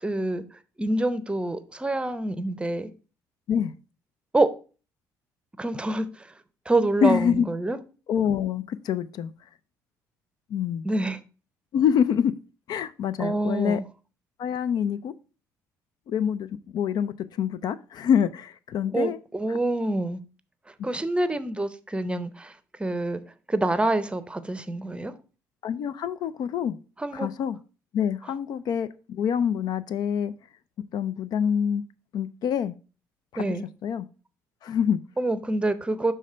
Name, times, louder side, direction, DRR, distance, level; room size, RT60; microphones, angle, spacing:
voice 1, 0.0-2.9 4.3-4.5 5.6-6.4 6.7-7.8 10.8-11.2 13.2-13.8 18.9-20.2 20.7-23.2 23.5-25.1 27.0-27.3 28.2-28.3 33.4-33.7 35.2-36.1, right 2 dB, 15° right, 0.7 m, -27 dB
voice 2, 7.0-7.5 8.1-9.3 10.5-10.9 11.7-12.4 12.7-13.8 14.4-15.1 16.1-19.2 25.6-26.8 27.1-27.6 27.9-30.3 30.9-31.8 32.1-32.8 33.3-33.5 33.8-34.1 34.6-35.0, left 8 dB, 60° left, 0.4 m, -26 dB
6.4 x 3.3 x 5.4 m
supercardioid pair, 75°, 8 cm